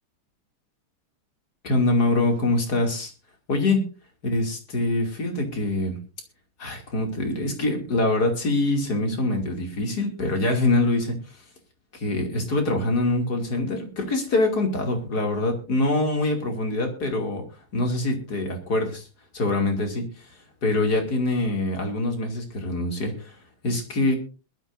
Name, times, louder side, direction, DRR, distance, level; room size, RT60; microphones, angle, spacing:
voice 1, 1.6-3.1 3.5-3.8 4.2-6.0 6.6-11.2 11.9-17.4 17.7-19.1 19.3-20.3 20.6-23.4 23.6-24.2, left 2 dB, 45° left, 3 dB, 3.1 m, -24 dB
21.5 x 12.5 x 2.6 m, 0.33 s
omnidirectional pair, 2.4 m